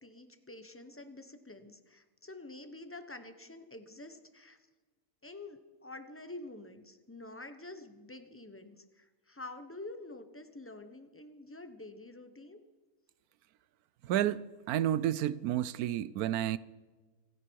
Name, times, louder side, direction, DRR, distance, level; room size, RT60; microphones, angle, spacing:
voice 1, 0.0-4.6 5.2-12.6, left 2 dB, 10° left, 1.0 m, -48 dB
voice 2, 14.0-16.6, right 12 dB, 90° right, 1.1 m, -31 dB
27.0 x 10.0 x 4.7 m
omnidirectional pair, 1.5 m